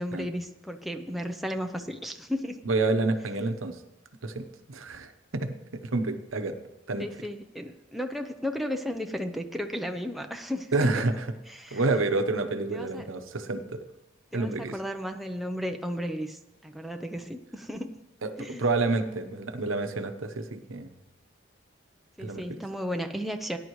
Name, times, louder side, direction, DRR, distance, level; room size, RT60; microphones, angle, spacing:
voice 1, 0.0-2.6 7.0-10.9 11.5-12.1 12.7-13.1 14.3-18.0 18.4-18.6 22.2-23.6, equal, ahead, 4 dB, 0.6 m, -34 dB
voice 2, 2.6-3.8 4.2-6.6 6.9-7.1 10.7-11.2 11.7-13.8 14.3-14.7 18.2-20.9 22.2-22.4, right 3 dB, 85° right, 8 dB, 1.0 m, -29 dB
18.5 x 10.5 x 3.2 m, 1.0 s
head